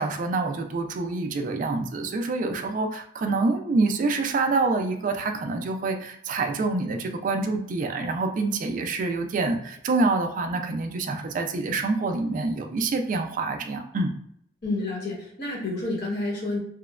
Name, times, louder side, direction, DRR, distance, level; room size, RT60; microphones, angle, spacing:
voice 1, 0.0-14.1, right 3 dB, 45° right, 5 dB, 0.3 m, -26 dB
voice 2, 14.6-16.6, left 2 dB, 60° left, -4 dB, 1.0 m, -29 dB
2.9 x 2.1 x 2.3 m, 0.69 s
head